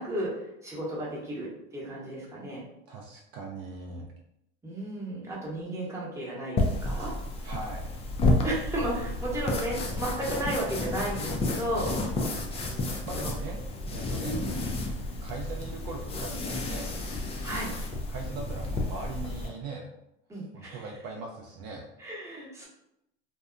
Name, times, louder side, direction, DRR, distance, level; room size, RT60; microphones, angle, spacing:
voice 1, 0.0-2.6 4.6-7.1 8.4-11.9 13.1-13.3 14.2-14.5 17.4-17.7 20.3-20.8 22.0-22.7, right 1 dB, 10° right, -6 dB, 0.9 m, -33 dB
voice 2, 2.9-4.1 7.4-8.0 13.1-13.6 13.9-14.3 15.2-16.9 18.1-19.9 20.5-21.8, right 3 dB, 55° right, -1 dB, 0.5 m, -40 dB
sound 1, 6.6-19.5, left 2 dB, 20° left, 0.4 m, -31 dB
2.7 x 2.2 x 2.4 m, 0.81 s
supercardioid pair, 110°, 30 cm